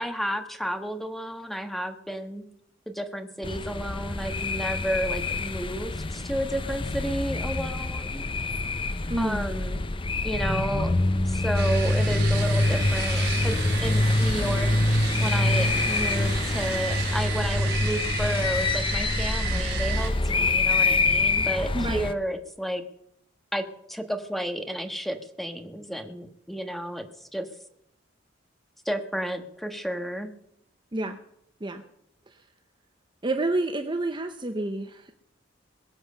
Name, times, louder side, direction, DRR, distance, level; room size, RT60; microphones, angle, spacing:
voice 1, 0.0-2.5 2.9-8.2 9.2-9.8 10.2-10.9 11.2-14.7 15.2-22.8 23.5-27.1 27.3-27.5 28.8-30.3, equal, ahead, 6 dB, 1.4 m, -32 dB
sound 1, 3.4-22.1, left 2 dB, 25° left, 0.7 m, -25 dB
voice 2, 9.1-9.5 21.7-22.1 30.9-31.2 31.6-31.8 33.2-35.2, right 2 dB, 25° right, 7 dB, 0.8 m, -29 dB
sound 2, 11.5-20.1, right 7 dB, 55° right, 4.5 m, -34 dB
22.0 x 7.8 x 6.7 m, 0.74 s
head